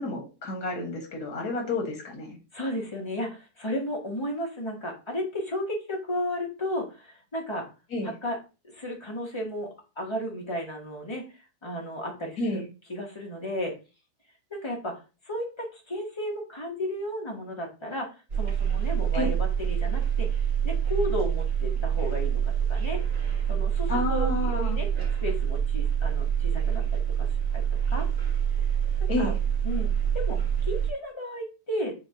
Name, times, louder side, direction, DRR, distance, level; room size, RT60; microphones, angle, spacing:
voice 1, 0.0-2.4 7.9-8.1 12.4-12.7 19.1-19.3 23.9-24.8 29.1-29.4, left 2 dB, 80° left, 1 dB, 1.9 m, -30 dB
voice 2, 2.5-7.7 8.0-8.4 8.7-9.7 10.0-11.3 11.6-12.6 12.9-13.7 14.5-15.0 15.2-20.3 20.6-23.0 23.5-24.9 25.2-27.3 27.5-27.6 27.9-28.1 29.2-29.3 29.6-31.9, equal, 25° left, 0 dB, 0.7 m, -33 dB
sound 1, 18.3-30.9, right 8 dB, 85° right, 2.0 m, -26 dB
6.8 x 2.3 x 2.7 m, 0.31 s
omnidirectional pair, 1.7 m